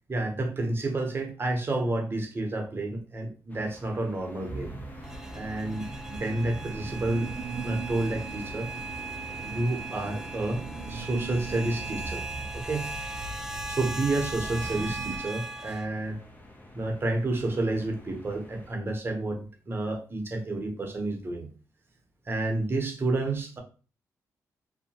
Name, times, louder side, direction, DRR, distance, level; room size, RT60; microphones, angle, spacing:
voice 1, 0.1-4.7 5.3-7.3 7.6-8.7 9.4-12.2 12.5-12.9 13.7-16.2 16.7-21.5 22.3-23.6, right 2 dB, 35° right, 3 dB, 0.8 m, -30 dB
sound 1, 3.5-18.7, equal, 25° left, 0.7 m, -47 dB
sound 2, 4.5-15.2, right 3 dB, 70° right, 0.5 m, -40 dB
sound 3, 5.0-15.9, right 2 dB, 10° right, 0.3 m, -39 dB
2.7 x 2.1 x 2.8 m, 0.36 s
cardioid pair, 70°, 7 cm